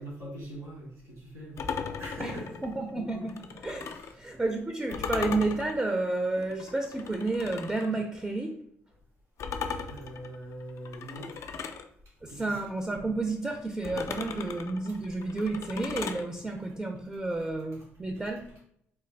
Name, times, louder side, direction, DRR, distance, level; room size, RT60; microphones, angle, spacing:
voice 1, 0.0-3.2 3.8-4.2 9.9-11.4 12.3-12.6, right 1 dB, 80° right, -5 dB, 1.5 m, -43 dB
sound 1, 1.6-4.2 4.9-7.9 9.4-11.9 13.8-16.3, left 6 dB, 60° left, 0.3 m, -37 dB
voice 2, 2.6-3.3 3.6-8.6 12.2-18.5, right 2 dB, 15° right, 3 dB, 0.4 m, -31 dB
3.2 x 2.2 x 3.2 m, 0.69 s
supercardioid pair, 70°, 5 cm